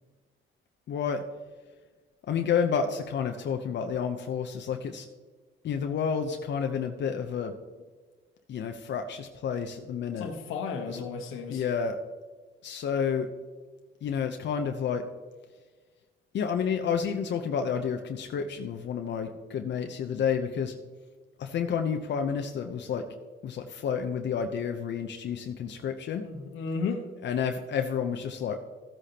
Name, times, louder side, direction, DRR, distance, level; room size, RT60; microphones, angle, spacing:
voice 1, 0.9-1.2 2.3-5.1 5.6-7.6 8.5-10.3 10.9-11.0 11.5-12.0 12.6-13.3 14.0-15.1 16.3-20.7 21.4-23.1 23.4-26.3 27.2-28.6, left 7 dB, 65° left, 5 dB, 0.8 m, -30 dB
voice 2, 10.2-11.6 26.2-27.0, left 5 dB, 90° left, 3 dB, 1.3 m, -33 dB
14.5 x 8.2 x 2.9 m, 1.4 s
cardioid pair, 90°, 20 cm